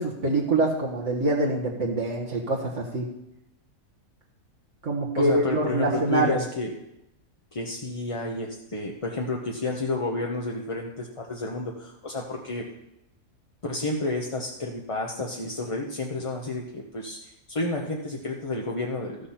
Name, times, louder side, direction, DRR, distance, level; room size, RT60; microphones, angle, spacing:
voice 1, 0.0-3.0 4.8-6.4, right 2 dB, 55° right, -2 dB, 1.6 m, -25 dB
voice 2, 5.2-6.7 7.5-12.7 13.6-19.3, left 3 dB, 30° left, 0 dB, 0.8 m, -30 dB
13.5 x 6.6 x 5.7 m, 0.84 s
omnidirectional pair, 1.5 m